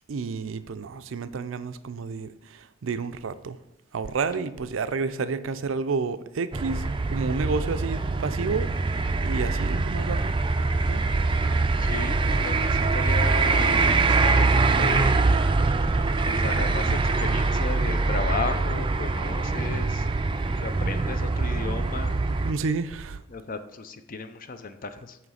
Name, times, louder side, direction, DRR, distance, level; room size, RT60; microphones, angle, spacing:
voice 1, 0.1-3.6 3.9-6.8 7.1-10.4 10.9-11.1 22.4-23.2, right 4 dB, 85° right, 0.5 m, -30 dB
sound 1, 6.5-22.5, right 3 dB, 25° right, 0.4 m, -24 dB
voice 2, 11.8-15.2 16.2-20.1 20.6-22.2 23.3-25.2, left 4 dB, 45° left, 0.6 m, -35 dB
9.1 x 3.2 x 6.2 m
head